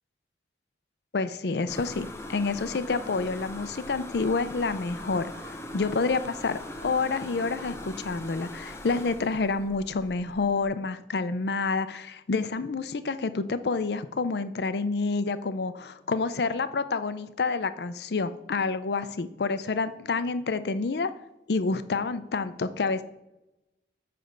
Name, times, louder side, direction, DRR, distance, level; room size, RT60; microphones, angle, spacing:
voice 1, 1.1-5.3 5.7-21.1 21.5-23.0, left 4 dB, 70° left, 13 dB, 0.5 m, -28 dB
sound 1, 1.7-10.7, left 1 dB, 15° left, 0.7 m, -41 dB
8.8 x 3.4 x 6.5 m, 0.92 s
head